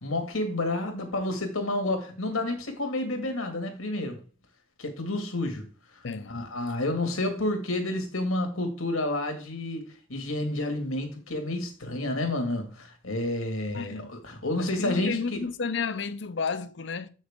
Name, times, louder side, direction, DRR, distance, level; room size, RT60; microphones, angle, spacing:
voice 1, 0.0-4.2 4.8-5.7 6.3-9.8 10.1-15.4, left 1 dB, 85° left, 2.1 m, -30 dB
voice 2, 13.7-14.1 14.5-17.1, left 5 dB, 55° left, 0.6 m, -32 dB
7.7 x 6.4 x 3.6 m
head